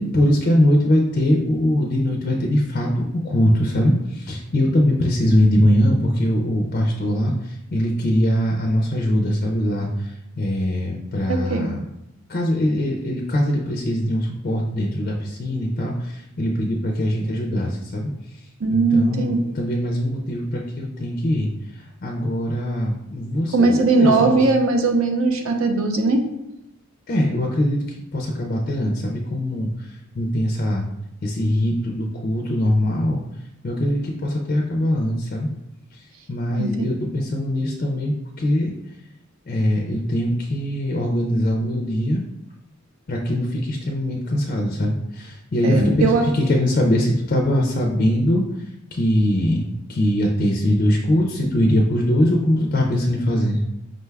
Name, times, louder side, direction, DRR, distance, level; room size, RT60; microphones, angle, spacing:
voice 1, 0.0-11.8 12.3-18.1 18.7-21.5 22.0-24.4 27.1-27.8 28.1-29.7 30.1-30.9 31.2-33.2 33.6-35.5 36.3-38.7 39.5-42.2 43.1-48.4 48.9-53.6, left 1 dB, 40° left, 0 dB, 0.4 m, -22 dB
voice 2, 5.3-5.7 11.3-11.7 18.6-19.4 23.5-26.2 36.6-36.8 45.6-46.3, right 3 dB, 75° right, 5 dB, 0.6 m, -19 dB
5.1 x 2.2 x 3.3 m, 0.85 s
head